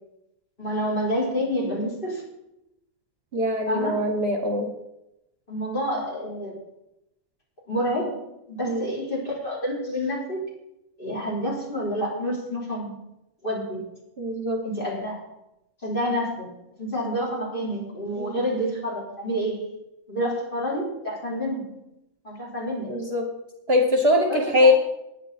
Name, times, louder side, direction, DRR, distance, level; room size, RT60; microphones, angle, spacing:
voice 1, 0.6-2.2 3.7-4.0 5.5-6.5 7.7-8.2 8.5-10.4 11.0-13.0 13.4-13.8 14.6-15.2 15.8-16.5 16.8-19.7 20.1-21.8 22.2-22.9 24.3-24.7, equal, 35° left, -3 dB, 4.5 m, -28 dB
voice 2, 3.3-4.7 8.6-8.8 14.2-14.6 18.2-18.4 20.2-20.4 22.9-23.3 23.7-24.7, left 1 dB, 45° right, 5 dB, 1.3 m, -22 dB
19.5 x 8.2 x 4.2 m, 0.88 s
omnidirectional pair, 1.6 m